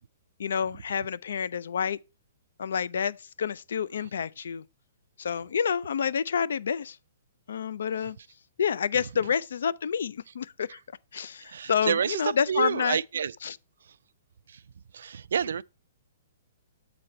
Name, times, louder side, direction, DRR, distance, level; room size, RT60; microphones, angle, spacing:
voice 1, 0.4-2.0 2.6-4.6 5.2-7.0 7.5-8.2 8.6-10.8 11.1-13.0 13.4-13.6, left 7 dB, 75° left, 0.4 m, -29 dB
voice 2, 11.4-12.2 12.5-13.3 14.9-15.6, right 7 dB, 80° right, 0.3 m, -28 dB
7.6 x 4.1 x 4.4 m
hypercardioid pair, 170°, 0 cm